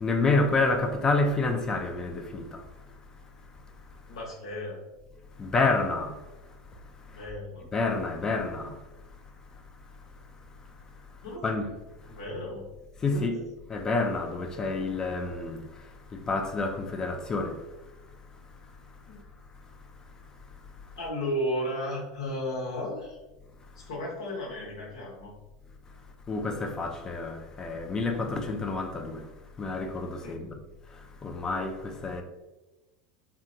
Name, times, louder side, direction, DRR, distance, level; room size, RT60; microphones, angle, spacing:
voice 1, 0.0-2.4 5.4-6.1 7.7-8.7 11.4-11.7 13.0-13.3 13.7-15.6 16.3-17.5 26.3-29.2 29.6-30.5 31.2-32.2, left 3 dB, 25° left, 0.4 m, -28 dB
voice 2, 4.1-4.8 7.1-7.7 11.2-11.4 12.1-12.6 13.1-13.3 19.1-19.2 21.0-23.2 23.9-25.3 30.2-30.6, equal, 80° left, 1.1 m, -34 dB
2.8 x 2.2 x 2.6 m
hypercardioid pair, 95°, 3 cm